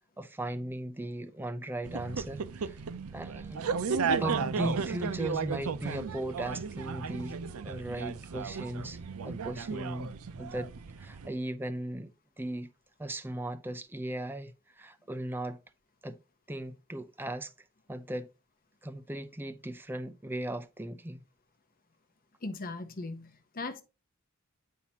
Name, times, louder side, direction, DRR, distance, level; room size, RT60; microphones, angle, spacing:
voice 1, 0.2-2.8 3.1-3.8 4.2-7.4 7.6-9.0 9.2-10.1 10.4-10.7 11.0-12.1 12.4-12.7 13.0-15.6 16.0-16.2 16.5-17.5 17.9-18.3 18.8-21.2, right 1 dB, 10° right, 0.5 m, -37 dB
sound 1, 1.8-11.3, right 5 dB, 80° right, 0.5 m, -34 dB
voice 2, 22.4-23.8, left 3 dB, 40° left, 0.9 m, -38 dB
8.3 x 5.6 x 2.8 m
head